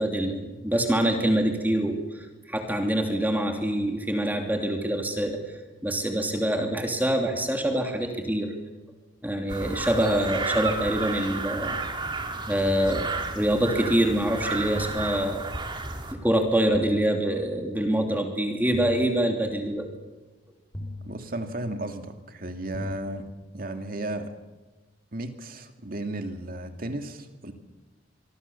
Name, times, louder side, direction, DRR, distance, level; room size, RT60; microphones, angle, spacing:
voice 1, 0.0-5.4 5.8-8.5 9.2-11.8 12.5-15.4 16.1-19.9, right 1 dB, 10° right, 3 dB, 2.8 m, -25 dB
sound 1, 9.5-16.1, right 3 dB, 25° right, 2.6 m, -32 dB
sound 2, 14.8-15.9 16.7-17.9 18.7-19.9 20.7-21.9 22.7-23.9, left 1 dB, 20° left, 3.2 m, -41 dB
voice 2, 21.0-23.3 23.5-24.3 25.1-27.5, right 1 dB, 50° right, 6 dB, 2.4 m, -34 dB
24.5 x 24.5 x 7.1 m, 1.2 s
head